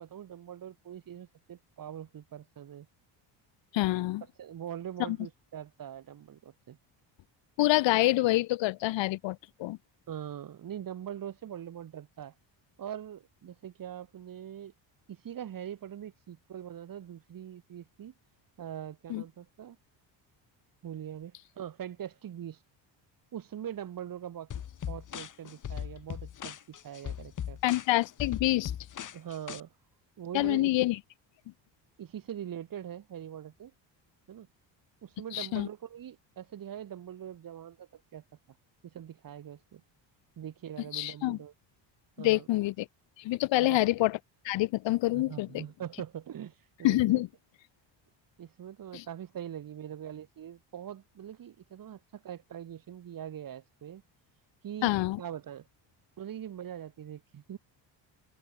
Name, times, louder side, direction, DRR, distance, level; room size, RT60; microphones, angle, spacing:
voice 1, 0.0-2.9 4.4-6.8 10.1-12.3 12.8-14.7 15.1-18.1 18.6-19.8 20.8-22.6 23.3-24.5 24.9-27.6 29.1-29.7 30.2-30.7 32.0-33.7 34.3-34.5 35.0-38.2 38.8-39.8 40.4-41.5 42.2-42.5 43.5-43.9 45.1-47.2 48.4-54.0 54.6-54.9 55.2-55.7 56.2-57.6, right 10 dB, 45° right, 7.8 m, -42 dB
voice 2, 3.7-4.2 5.1-5.2 7.6-9.8 19.1-19.2 27.6-28.7 30.3-31.0 35.3-35.7 40.9-41.4 42.2-42.9 43.2-44.2 44.4-45.6 46.8-47.3 48.9-49.0 54.8-55.2, left 17 dB, 75° left, 1.6 m, -27 dB
sound 1, 24.5-29.6, left 9 dB, 45° left, 3.7 m, -39 dB
open air
cardioid pair, 145°, 45 cm